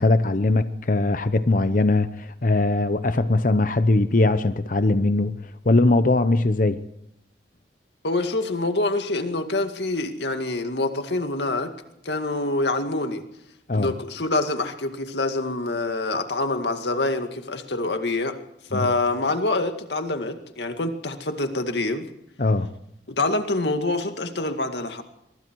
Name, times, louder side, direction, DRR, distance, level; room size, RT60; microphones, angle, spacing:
voice 1, 0.0-5.4 5.6-6.8 13.7-13.9 18.7-18.9 22.4-22.7, left 2 dB, 50° left, 0.8 m, -20 dB
voice 2, 8.0-11.7 12.1-13.2 13.7-18.4 18.7-22.1 23.1-25.0, left 2 dB, 80° left, 2.1 m, -26 dB
24.5 x 22.5 x 4.7 m
head